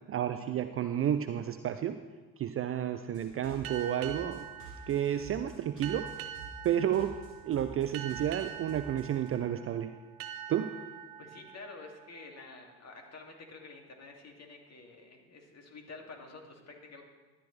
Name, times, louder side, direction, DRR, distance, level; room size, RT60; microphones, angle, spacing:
voice 1, 0.1-2.0 2.4-4.5 4.9-6.1 6.6-7.1 7.4-9.9 10.5-10.7, right 10 dB, 30° right, 10 dB, 0.5 m, -31 dB
sound 1, 3.1-9.3, right 2 dB, 85° left, 3.2 m, -50 dB
sound 2, 3.6-12.9, right 10 dB, 55° right, 0.8 m, -45 dB
voice 2, 11.2-17.0, left 3 dB, 35° left, 2 dB, 2.5 m, -49 dB
13.0 x 9.9 x 3.3 m, 1.3 s
figure-of-eight pair, 55°, 45 cm